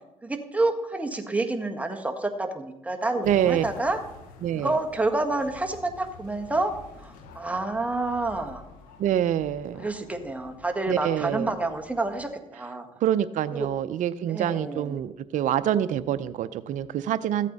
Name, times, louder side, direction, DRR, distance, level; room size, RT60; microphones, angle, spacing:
voice 1, 0.2-4.0 4.5-6.7 7.0-8.6 9.8-12.9 13.5-13.7 14.3-15.0, right 2 dB, 10° right, 3 dB, 1.6 m, -28 dB
sound 1, 3.2-12.3, left 4 dB, 90° left, 1.1 m, -48 dB
voice 2, 3.2-3.6 4.4-4.7 9.0-9.8 10.9-11.5 13.0-17.5, right 10 dB, 65° right, 13 dB, 0.5 m, -26 dB
14.0 x 8.3 x 4.0 m, 0.91 s
supercardioid pair, 70°, 14 cm